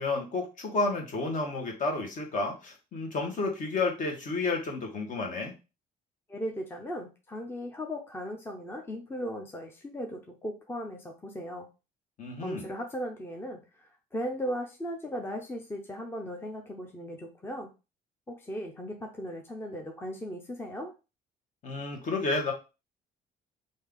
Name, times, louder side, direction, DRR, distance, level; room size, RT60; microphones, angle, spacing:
voice 1, 0.0-5.5 12.2-12.7 21.6-22.5, left 3 dB, 50° left, 1 dB, 1.3 m, -31 dB
voice 2, 6.3-11.7 12.4-17.7 18.3-20.9, equal, 15° left, 2 dB, 0.6 m, -37 dB
3.3 x 2.7 x 3.6 m, 0.29 s
cardioid pair, 110°, 17 cm